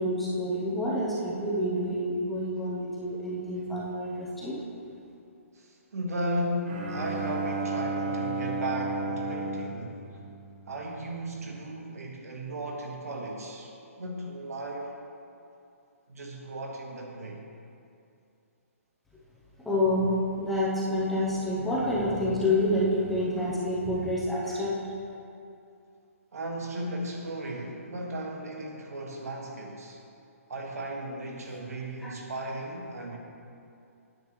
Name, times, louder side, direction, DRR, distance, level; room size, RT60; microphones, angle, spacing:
voice 1, 0.0-4.6 19.6-24.8 32.0-32.1, left 1 dB, ahead, -7 dB, 0.6 m, -28 dB
voice 2, 5.5-10.2 10.7-14.9 16.1-17.4 23.4-23.5 26.3-30.0 30.5-33.2, right 1 dB, 85° right, 0 dB, 1.5 m, -35 dB
Bowed string instrument, 6.7-11.0, right 2 dB, 40° right, 1.1 m, -33 dB
9.7 x 7.7 x 3.1 m, 2.6 s
hypercardioid pair, 175°, 8 cm